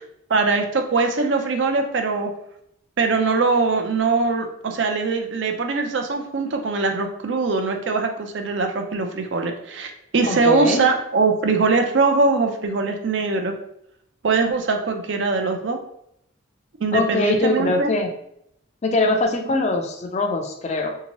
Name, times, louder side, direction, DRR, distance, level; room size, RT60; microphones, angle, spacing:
voice 1, 0.3-2.3 3.0-13.5 14.2-15.8 16.8-17.9 19.5-19.6, right 4 dB, 65° right, 5 dB, 0.5 m, -22 dB
voice 2, 10.2-10.8 16.9-18.1 18.8-21.0, left 2 dB, 35° left, 4 dB, 0.4 m, -22 dB
3.5 x 2.8 x 2.9 m, 0.76 s
head